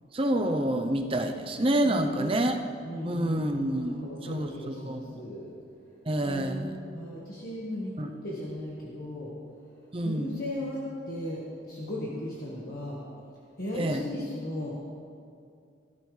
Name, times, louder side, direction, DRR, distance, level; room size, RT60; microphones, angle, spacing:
voice 1, 0.1-2.6 3.0-5.3 6.1-6.8 8.0-8.1 9.9-10.4 13.7-14.0, right 1 dB, 30° right, 5 dB, 0.7 m, -28 dB
voice 2, 1.8-2.3 2.8-5.5 6.2-9.3 10.0-13.0 13.6-14.8, left 1 dB, 50° left, -5 dB, 1.6 m, -36 dB
17.0 x 12.5 x 3.3 m, 2.4 s
head